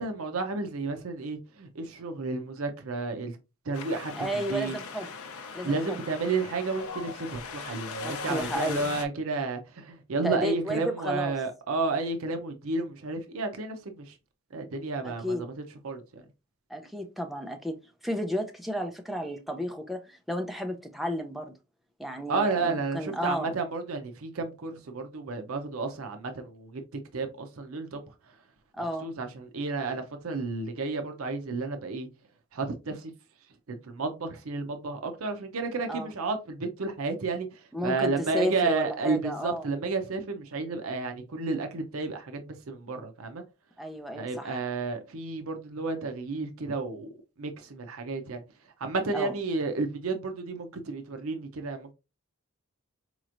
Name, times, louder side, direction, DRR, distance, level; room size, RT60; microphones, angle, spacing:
voice 1, 0.0-3.4 3.7-4.8 5.6-14.1 14.5-15.5 15.8-16.2 22.3-26.8 27.1-28.0 28.8-32.1 32.5-33.1 33.7-43.4 44.1-47.1 47.4-48.4 48.8-51.9, right 3 dB, 80° right, 0.6 m, -32 dB
Wind, 3.7-9.1, left 5 dB, 80° left, 0.5 m, -39 dB
voice 2, 4.1-5.1 5.5-6.0 8.0-8.9 10.2-11.3 15.0-15.5 16.7-17.8 18.0-21.5 22.0-23.5 28.7-29.1 35.9-36.1 37.7-39.7 43.8-44.6 49.1-49.3, equal, ahead, 0.5 m, -33 dB
4.2 x 3.0 x 2.5 m
head